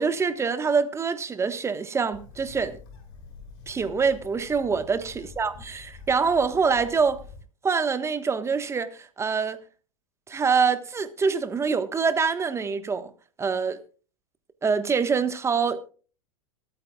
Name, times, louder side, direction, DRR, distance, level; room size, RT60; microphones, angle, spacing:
voice 1, 0.0-2.8 3.7-7.2 7.6-9.6 10.3-13.1 13.4-13.8 14.6-15.8, right 5 dB, 15° right, 1.2 m, -25 dB
Bird, 2.1-7.4, left 4 dB, 55° left, 6.3 m, -46 dB
24.5 x 9.0 x 2.3 m
hypercardioid pair, 120°, 17 cm